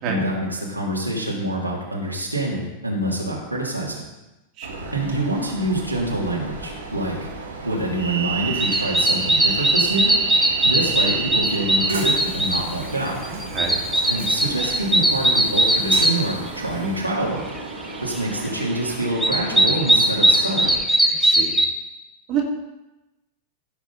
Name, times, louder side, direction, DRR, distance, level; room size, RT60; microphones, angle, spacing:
voice 1, 0.0-4.0 4.9-7.3 7.6-10.1 10.6-13.2 14.1-17.5 18.0-20.7, right 1 dB, 90° right, -4 dB, 2.9 m, -26 dB
voice 2, 4.6-4.9 13.3-13.8 21.1-21.6 22.3-22.4, right 7 dB, 40° right, 0 dB, 2.4 m, -28 dB
Train, 4.6-20.8, right 5 dB, 70° right, 2.7 m, -32 dB
sound 1, 8.6-12.6 13.1-16.1 18.6-18.7 19.0-21.7, right 1 dB, 5° right, 1.2 m, -19 dB
16.0 x 7.4 x 4.2 m, 1.0 s
figure-of-eight pair, 90°, 0 cm